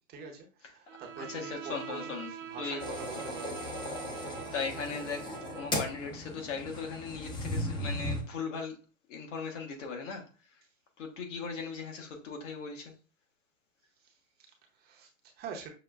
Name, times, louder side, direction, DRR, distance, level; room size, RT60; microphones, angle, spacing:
voice 1, 0.0-3.6 4.0-4.5 14.0-15.7, right 5 dB, 25° right, 0.7 m, -46 dB
Bowed string instrument, 0.9-6.1, right 9 dB, 65° right, 0.7 m, -45 dB
voice 2, 1.2-2.3 2.6-2.8 4.2-8.8 9.1-10.6 11.0-12.9, left 5 dB, 65° left, 1.3 m, -38 dB
sound 1, 2.8-8.2, left 1 dB, 10° left, 0.5 m, -37 dB
6.1 x 2.3 x 2.3 m
hypercardioid pair, 115°, 40 cm